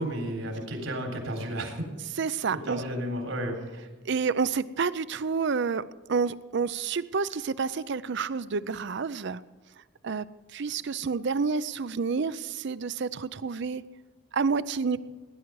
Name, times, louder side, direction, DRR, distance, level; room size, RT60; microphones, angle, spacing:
voice 1, 0.0-1.8 2.5-3.9, right 1 dB, 85° right, 3 dB, 3.9 m, -33 dB
voice 2, 2.2-2.8 4.0-5.8 6.1-9.4 10.0-10.3 10.5-13.8 14.3-15.0, right 5 dB, 60° right, 16 dB, 0.5 m, -29 dB
18.0 x 10.5 x 4.7 m, 1.3 s
head